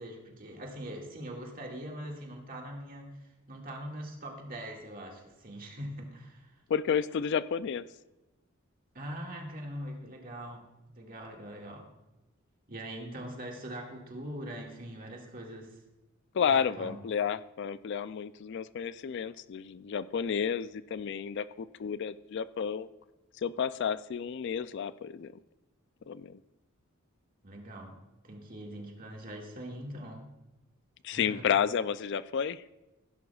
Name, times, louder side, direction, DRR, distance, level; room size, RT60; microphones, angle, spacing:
voice 1, 0.0-6.5 8.9-11.9 12.7-15.8 16.5-17.0 27.4-28.0 28.2-30.3 31.1-31.5, right 1 dB, 45° right, 0 dB, 2.0 m, -42 dB
voice 2, 6.7-7.9 16.3-22.9 23.4-25.3 26.1-26.4 31.0-32.6, left 7 dB, 55° left, 15 dB, 0.3 m, -31 dB
16.0 x 11.0 x 2.4 m, 1.0 s
head